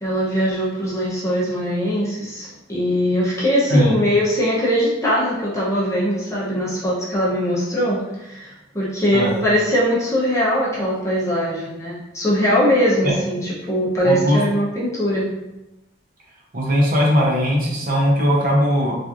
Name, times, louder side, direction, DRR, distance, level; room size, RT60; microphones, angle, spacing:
voice 1, 0.0-15.3, equal, 15° left, -6 dB, 0.7 m, -21 dB
voice 2, 14.0-14.4 16.5-19.0, equal, 50° right, -3 dB, 0.7 m, -18 dB
3.0 x 2.4 x 2.5 m, 0.94 s
head